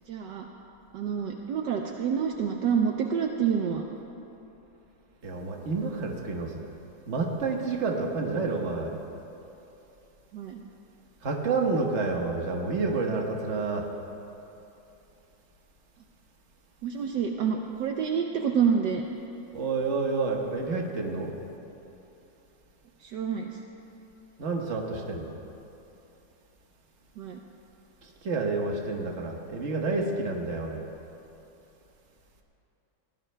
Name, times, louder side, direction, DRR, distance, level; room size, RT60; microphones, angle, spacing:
voice 1, 0.1-0.5 0.9-3.8 10.3-10.6 16.8-19.0 23.0-23.6 27.2-27.4, right 7 dB, 70° right, 2 dB, 1.2 m, -28 dB
voice 2, 5.2-6.5 7.1-8.9 11.2-13.8 19.5-21.3 24.4-25.3 28.2-30.8, right 3 dB, 40° right, 1 dB, 1.4 m, -29 dB
22.5 x 17.0 x 2.2 m, 2.9 s
omnidirectional pair, 2.1 m